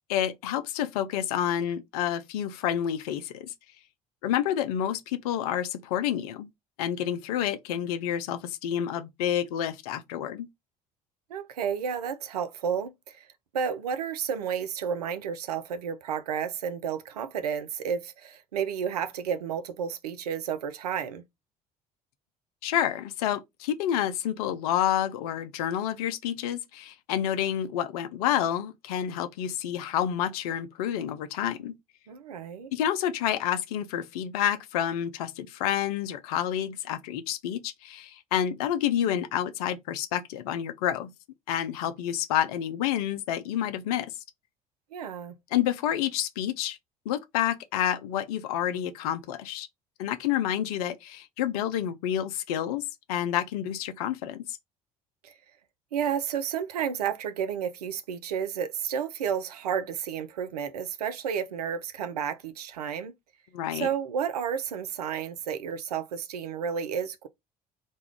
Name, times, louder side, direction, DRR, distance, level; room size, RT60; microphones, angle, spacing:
voice 1, 0.1-3.5 4.2-6.5 6.8-10.5 22.6-31.8 32.7-41.1 41.5-44.1 45.5-46.8 47.1-49.7 50.0-54.6 63.5-63.9, left 10 dB, 70° left, 0.5 m, -29 dB
voice 2, 11.3-13.3 13.5-21.2 32.1-32.7 44.9-45.3 55.2-55.3 55.9-63.1 63.7-67.3, right 7 dB, 85° right, 0.4 m, -31 dB
2.6 x 2.3 x 3.4 m
figure-of-eight pair, 55°, 20 cm